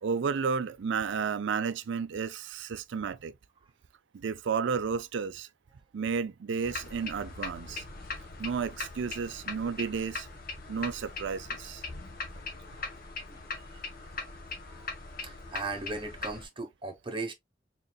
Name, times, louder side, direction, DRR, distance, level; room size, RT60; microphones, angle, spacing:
voice 1, 0.0-3.3 4.1-5.5 5.9-7.8 8.4-10.3 10.7-11.8, right 6 dB, 65° right, 0.4 m, -32 dB
sound 1, 6.6-16.5, left 3 dB, 50° left, 1.1 m, -40 dB
voice 2, 15.2-17.3, right 3 dB, 25° right, 1.0 m, -38 dB
4.0 x 3.8 x 2.3 m
head